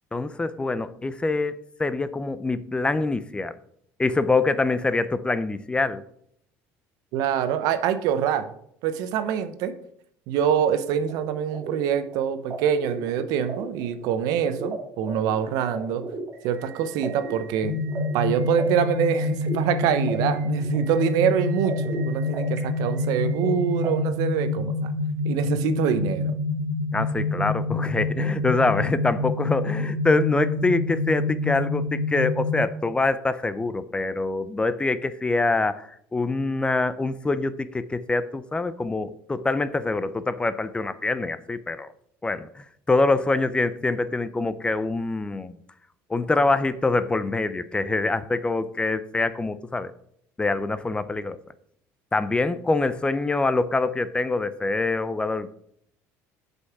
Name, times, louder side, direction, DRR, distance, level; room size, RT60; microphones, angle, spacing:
voice 1, 0.1-3.6 4.0-6.0 26.9-41.9 42.2-45.6 46.1-49.9 50.4-51.4 52.1-55.5, left 3 dB, 15° left, 14 dB, 0.5 m, -25 dB
voice 2, 7.1-8.5 8.8-9.8 10.3-16.1 16.4-17.8 18.1-24.9 25.2-26.3, right 8 dB, 75° right, 11 dB, 0.9 m, -25 dB
sound 1, 11.1-23.9, right 3 dB, 45° right, 2.2 m, -37 dB
sound 2, 17.6-32.6, left 2 dB, 75° left, 2.0 m, -27 dB
8.0 x 5.4 x 5.9 m, 0.69 s
supercardioid pair, 100°, 6 cm